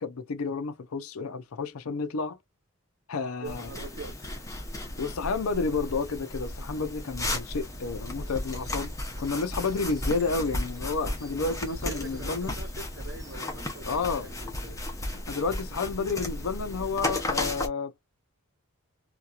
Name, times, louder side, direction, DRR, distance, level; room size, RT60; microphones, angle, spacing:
voice 1, 0.0-2.4 3.1-3.7 5.0-12.5 13.9-14.3 15.1-17.9, left 4 dB, 75° left, 0.5 m, -31 dB
sound 1, 3.4-17.7, left 1 dB, 15° left, 0.7 m, -35 dB
voice 2, 3.4-4.4 11.6-14.8, right 3 dB, 60° right, 1.1 m, -44 dB
Bird vocalization bird call bird song, 7.5-17.5, equal, 15° right, 0.8 m, -49 dB
2.8 x 2.3 x 2.3 m
head